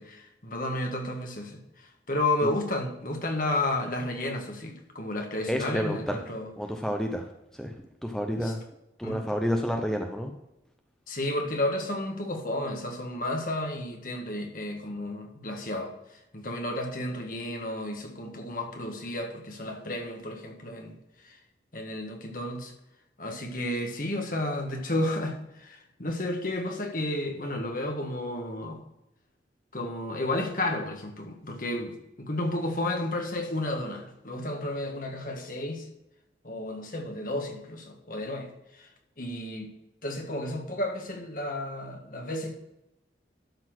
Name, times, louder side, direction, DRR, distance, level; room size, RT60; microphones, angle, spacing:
voice 1, 0.0-6.5 8.4-8.5 9.0-9.2 11.1-15.9 16.3-21.0 21.2-21.4 21.7-22.7 23.2-28.8 29.7-35.9 36.4-38.5 38.7-38.9 39.2-39.7 40.0-42.6, left 1 dB, 50° left, 3 dB, 1.7 m, -32 dB
voice 2, 5.5-6.2 6.6-7.3 7.5-7.7 8.0-8.6 9.0-10.3, equal, 5° left, 3 dB, 0.7 m, -29 dB
12.0 x 4.3 x 6.1 m, 0.89 s
head